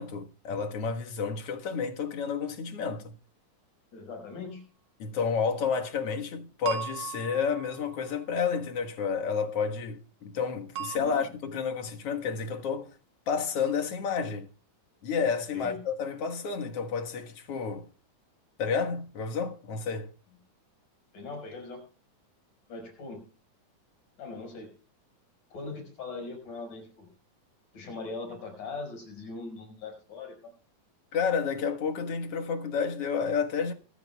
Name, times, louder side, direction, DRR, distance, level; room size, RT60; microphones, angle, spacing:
voice 1, 0.0-3.1 5.0-12.9 13.3-14.5 15.0-17.9 18.6-20.1 31.1-33.7, left 6 dB, 55° left, 2.3 m, -30 dB
voice 2, 3.9-4.6 10.9-11.1 15.5-15.8 21.1-21.8 22.7-23.2 24.2-24.7 25.5-27.1 27.7-30.5, left 3 dB, 85° left, 6.8 m, -40 dB
sound 1, 6.7-8.2 10.8-11.0, right 10 dB, 90° right, 2.9 m, -37 dB
24.0 x 13.0 x 2.3 m
omnidirectional pair, 3.6 m